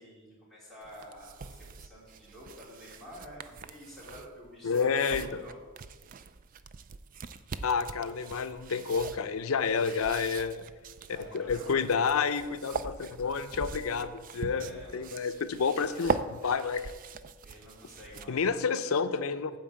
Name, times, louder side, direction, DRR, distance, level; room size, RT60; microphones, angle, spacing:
voice 1, 0.0-5.6 11.0-11.8 14.4-15.2 17.4-18.9, equal, ahead, -8 dB, 3.4 m, -50 dB
sound 1, 0.8-18.5, right 5 dB, 40° right, 0.3 m, -41 dB
voice 2, 4.6-5.4 7.6-10.6 11.3-16.9 18.3-19.5, left 5 dB, 90° left, 11 dB, 0.5 m, -29 dB
9.0 x 4.6 x 7.5 m, 1.3 s
head